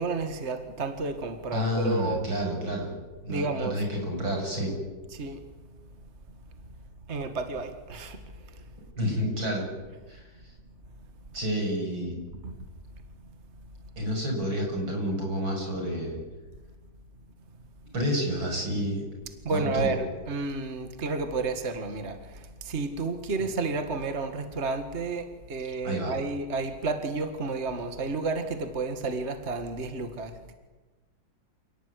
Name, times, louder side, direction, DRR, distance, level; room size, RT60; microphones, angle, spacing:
voice 1, 0.0-2.4 3.3-3.8 5.1-5.4 7.1-8.7 12.4-12.6 19.4-30.5, right 3 dB, 35° right, 7 dB, 2.1 m, -31 dB
voice 2, 1.5-2.9 3.2-4.7 9.0-9.7 10.1-10.2 11.3-12.2 14.0-16.2 17.9-19.0 19.5-20.0 25.8-26.1, equal, 85° right, 2 dB, 7.9 m, -29 dB
28.5 x 18.0 x 9.8 m, 1.3 s
omnidirectional pair, 2.1 m